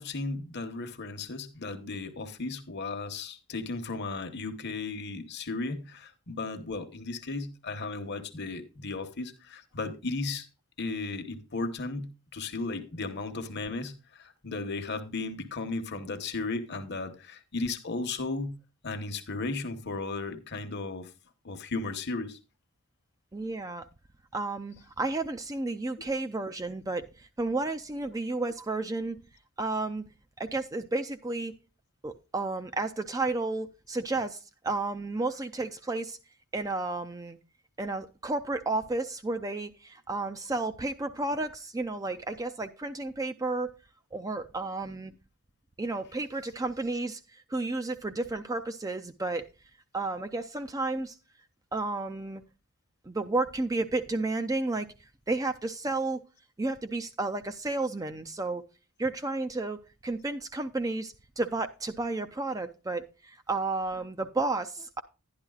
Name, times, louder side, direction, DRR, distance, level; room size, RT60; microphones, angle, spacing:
voice 1, 0.0-10.5 10.8-18.6 18.8-21.1 21.4-22.4, left 3 dB, 50° left, 1.0 m, -35 dB
voice 2, 23.3-23.9 24.3-29.2 29.6-30.0 30.4-31.5 32.0-36.2 36.5-37.4 37.8-43.7 44.1-45.1 45.8-49.5 49.9-51.2 51.7-52.4 53.1-56.2 56.6-58.6 59.0-65.0, right 2 dB, 15° right, 0.4 m, -32 dB
11.5 x 10.5 x 2.4 m
head